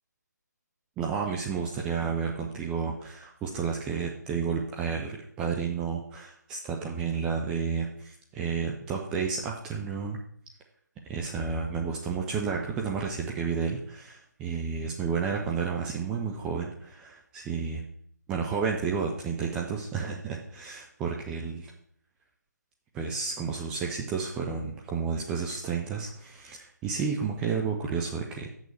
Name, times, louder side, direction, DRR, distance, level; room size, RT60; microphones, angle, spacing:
voice 1, 1.0-10.2 11.1-17.9 18.3-21.7 22.9-28.5, right 5 dB, 10° right, 0 dB, 0.5 m, -31 dB
6.4 x 6.2 x 6.7 m, 0.64 s
figure-of-eight pair, 155°, 10 cm